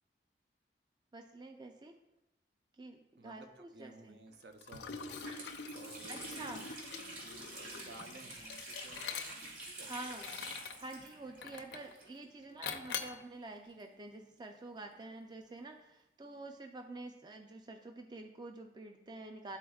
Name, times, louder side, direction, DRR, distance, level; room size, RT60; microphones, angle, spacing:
voice 1, 1.1-1.9 2.8-4.2 6.1-6.7 9.8-10.3 10.8-19.6, right 2 dB, 25° right, 4 dB, 0.4 m, -48 dB
voice 2, 3.2-5.2 5.7-10.5, right 2 dB, 70° right, 5 dB, 0.7 m, -56 dB
Water tap faucet, 4.3-4.4 4.7-12.5 12.7-12.8 13.6-15.2, right 2 dB, 45° right, 2.2 m, -49 dB
Liquid, 4.6-9.6 10.1-10.8 11.4-11.9 12.6-13.2, left 6 dB, 75° left, 0.6 m, -44 dB
12.0 x 4.2 x 2.3 m, 0.92 s
head